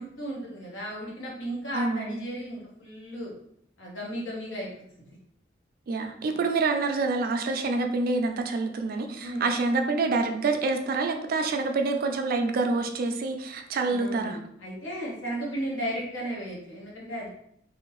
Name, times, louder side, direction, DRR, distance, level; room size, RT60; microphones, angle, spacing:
voice 1, 0.0-3.3 3.8-4.7 9.2-9.4 13.8-17.3, right 1 dB, 90° left, -4 dB, 1.0 m, -35 dB
voice 2, 1.7-2.2 5.9-14.4, right 3 dB, 50° right, 5 dB, 0.3 m, -27 dB
2.6 x 2.1 x 3.0 m, 0.71 s
head